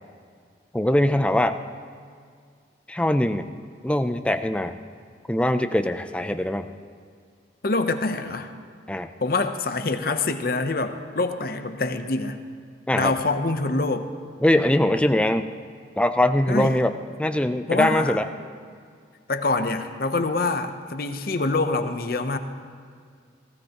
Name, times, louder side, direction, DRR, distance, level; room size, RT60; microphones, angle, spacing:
voice 1, 0.7-1.6 2.9-3.5 3.8-4.8 5.3-6.7 8.9-9.1 12.9-13.1 14.4-15.5 16.0-16.9 17.2-18.3, left 1 dB, 5° left, 8 dB, 0.4 m, -22 dB
voice 2, 7.6-8.5 9.2-12.4 12.9-14.1 16.5-16.8 17.7-18.2 19.3-22.4, left 3 dB, 50° left, 8 dB, 0.7 m, -25 dB
18.0 x 16.0 x 2.9 m, 2.1 s
head